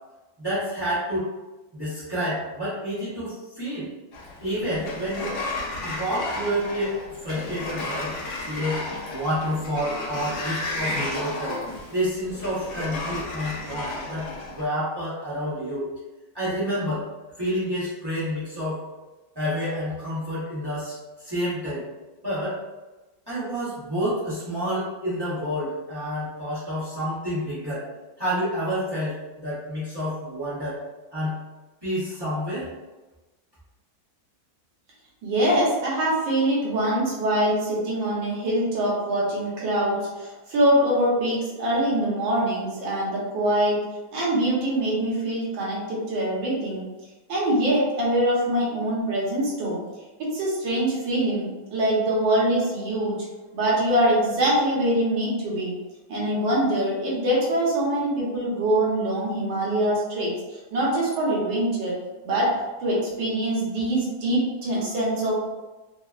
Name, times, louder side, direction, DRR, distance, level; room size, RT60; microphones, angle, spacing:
voice 1, 0.4-1.3 1.7-3.9 4.4-5.3 5.8-8.1 8.4-8.8 9.1-11.6 11.9-15.9 16.3-17.0 17.4-18.8 19.3-21.8 22.2-22.6 23.3-27.9 28.2-30.8 31.1-31.4 31.8-32.7, equal, 20° right, -11 dB, 0.7 m, -29 dB
Sliding door, 4.1-14.6, left 2 dB, 70° left, 1.1 m, -33 dB
voice 2, 35.2-43.8 44.1-46.9 47.3-49.8 50.2-53.2 53.5-55.8 56.1-60.3 60.7-61.9 62.2-65.3, right 1 dB, 75° right, -5 dB, 1.6 m, -24 dB
3.8 x 2.0 x 2.4 m, 1.1 s
omnidirectional pair, 2.1 m